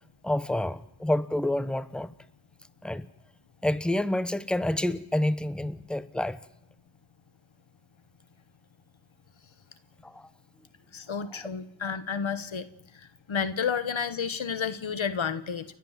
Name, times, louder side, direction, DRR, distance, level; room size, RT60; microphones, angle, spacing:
voice 1, 0.2-2.1 2.8-3.1 3.6-6.4 10.0-10.3 11.3-11.4, left 1 dB, ahead, 1.1 m, -28 dB
voice 2, 10.9-12.7 13.3-15.6, left 6 dB, 85° left, 1.3 m, -30 dB
30.0 x 12.0 x 7.4 m
wide cardioid pair, 65°, 46 cm